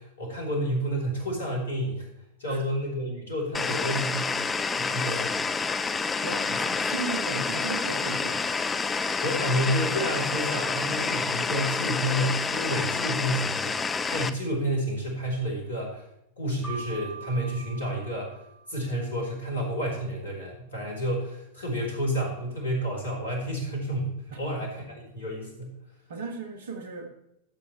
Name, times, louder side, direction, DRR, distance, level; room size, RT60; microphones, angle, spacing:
voice 1, 0.0-2.1 2.4-4.4 4.8-5.3 9.2-16.0 16.4-18.4 18.7-25.7, equal, 70° left, -2 dB, 3.3 m, -30 dB
sound 1, 3.5-14.3, left 4 dB, 15° left, 0.5 m, -28 dB
voice 2, 6.2-8.5 24.3-24.4 26.1-27.1, right 4 dB, 60° right, 5 dB, 1.7 m, -36 dB
Keyboard (musical), 16.6-19.2, right 4 dB, 5° right, 4.3 m, -43 dB
13.0 x 7.4 x 3.1 m, 0.81 s
figure-of-eight pair, 90°, 0 cm